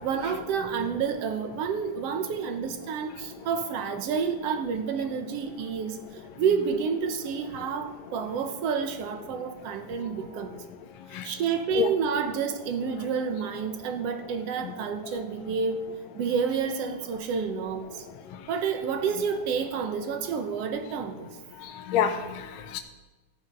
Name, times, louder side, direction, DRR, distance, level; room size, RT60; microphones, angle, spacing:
voice 1, 0.0-6.0 6.4-10.6 11.2-15.8 16.1-18.0 18.5-21.3, right 6 dB, 65° right, 7 dB, 1.6 m, -29 dB
voice 2, 11.0-11.4 11.8-11.9 18.3-18.5 21.6-22.8, left 9 dB, 70° left, 5 dB, 1.8 m, -29 dB
14.0 x 9.7 x 5.3 m, 1.2 s
omnidirectional pair, 3.7 m